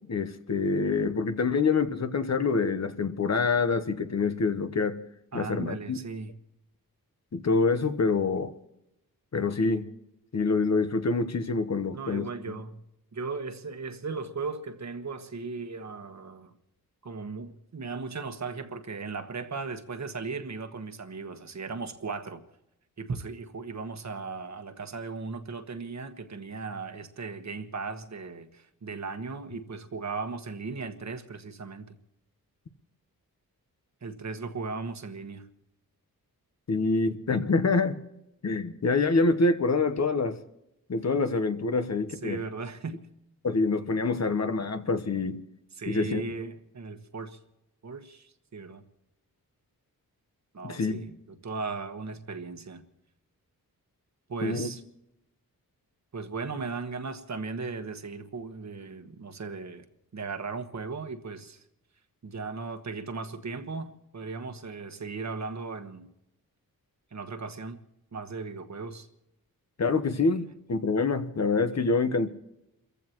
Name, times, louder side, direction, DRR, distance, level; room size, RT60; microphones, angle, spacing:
voice 1, 0.1-5.0 5.3-6.0 7.3-8.5 9.3-9.9 10.3-12.6 36.7-38.0 38.4-40.4 40.9-42.4 43.4-45.4 45.9-46.2 50.6-51.0 54.4-54.7 69.8-72.3, left 4 dB, 45° left, 1.1 m, -26 dB
voice 2, 5.3-6.3 11.9-12.8 13.1-16.5 17.0-22.4 23.0-32.0 34.0-35.4 42.2-43.1 45.7-47.4 47.8-48.8 50.5-52.8 54.3-54.8 56.1-59.8 60.1-61.6 62.2-66.1 67.1-67.8 68.1-69.1 70.1-70.2, right 4 dB, 50° right, 1.4 m, -37 dB
29.0 x 15.0 x 3.0 m
wide cardioid pair, 120°, 36 cm